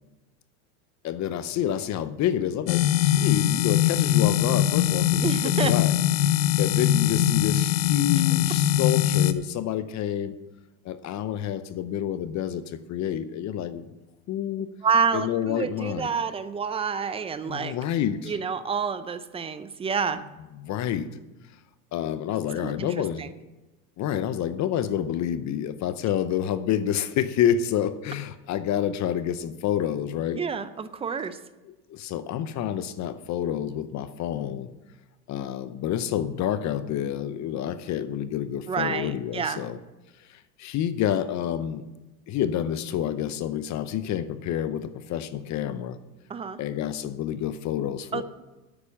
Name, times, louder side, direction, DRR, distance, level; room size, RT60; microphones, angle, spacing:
voice 1, 1.0-5.3 5.6-5.9 6.2-10.4 10.8-13.9 14.3-14.7 15.1-16.1 17.5-18.4 20.6-21.1 21.9-23.2 24.0-30.4 31.7-34.7 35.3-39.8 40.2-41.8 42.3-46.0 46.6-48.2, left 10 dB, 35° left, 12 dB, 0.7 m, -28 dB
sound 1, 2.7-9.3, left 11 dB, 70° left, 0.9 m, -22 dB
voice 2, 5.2-5.7 14.8-17.8 18.3-20.2 22.6-22.9 23.2-23.3 30.3-31.4 38.7-39.6 46.3-46.6 48.1-48.2, right 6 dB, 15° right, 13 dB, 0.4 m, -28 dB
9.9 x 8.7 x 7.1 m, 1.1 s
supercardioid pair, 125°, 49 cm